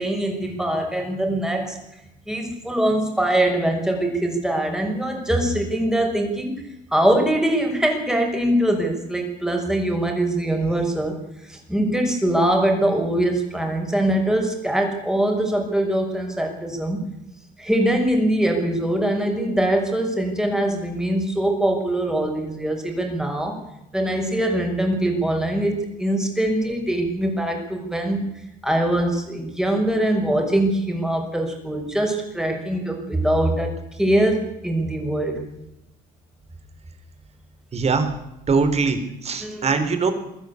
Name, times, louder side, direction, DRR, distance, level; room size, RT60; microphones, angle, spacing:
voice 1, 0.0-1.8 2.3-6.5 6.9-11.1 11.4-17.0 17.6-23.6 23.9-28.2 28.6-35.4 39.4-39.7, right 1 dB, 5° right, 3 dB, 6.1 m, -22 dB
voice 2, 37.7-38.1 38.5-40.1, right 4 dB, 40° right, 9 dB, 3.9 m, -22 dB
22.0 x 14.0 x 8.5 m, 0.87 s
cardioid pair, 110°, 17 cm